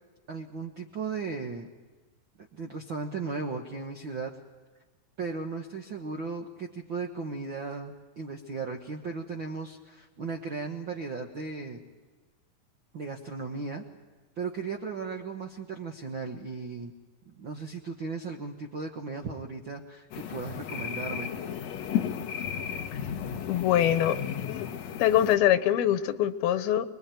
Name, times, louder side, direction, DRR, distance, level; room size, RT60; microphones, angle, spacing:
voice 1, 0.3-1.7 2.5-4.4 5.2-11.8 12.9-13.8 14.4-16.9 17.3-21.3, right 4 dB, 60° right, 2 dB, 1.2 m, -36 dB
sound 1, 20.1-25.4, left 8 dB, 55° left, 2.1 m, -34 dB
voice 2, 23.5-24.7 25.0-27.0, left 11 dB, 85° left, 11 dB, 3.0 m, -24 dB
25.5 x 22.0 x 9.3 m, 1.3 s
omnidirectional pair, 4.3 m